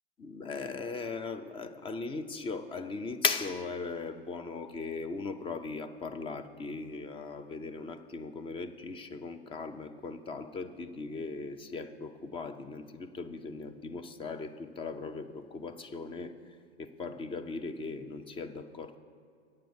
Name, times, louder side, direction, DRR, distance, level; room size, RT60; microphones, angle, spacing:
voice 1, 0.2-19.0, left 4 dB, 15° left, 10 dB, 0.5 m, -38 dB
9.5 x 7.5 x 7.0 m, 2.3 s
hypercardioid pair, 105°, 32 cm